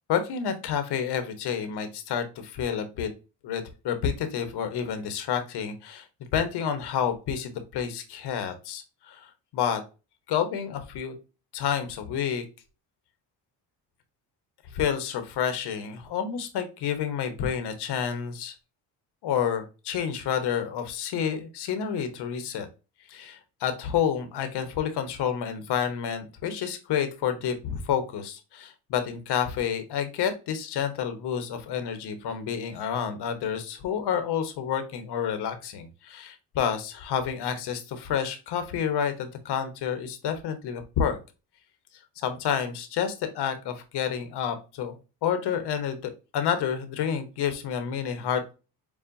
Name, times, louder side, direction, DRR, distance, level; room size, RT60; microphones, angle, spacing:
voice 1, 0.1-3.1 3.4-6.1 6.3-9.8 10.3-11.1 11.5-12.4 14.7-18.5 19.2-22.7 23.1-41.2 42.2-48.5, left 8 dB, 70° left, 8 dB, 1.1 m, -29 dB
7.1 x 2.4 x 2.6 m, 0.31 s
cardioid pair, 85°, 41 cm